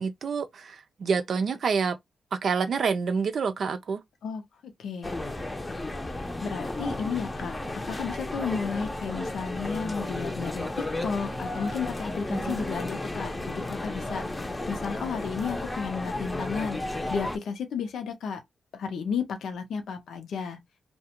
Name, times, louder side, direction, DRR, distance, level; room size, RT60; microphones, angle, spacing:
voice 1, 0.0-2.0 2.3-4.0 12.3-12.6, right 5 dB, 70° right, 0.4 m, -28 dB
voice 2, 4.2-5.2 6.4-14.3 14.7-16.8 17.1-18.4 18.7-20.6, left 6 dB, 85° left, 0.6 m, -33 dB
sound 1, 5.0-17.4, left 2 dB, 20° left, 0.6 m, -33 dB
2.4 x 2.2 x 2.8 m
cardioid pair, 70°, 0 cm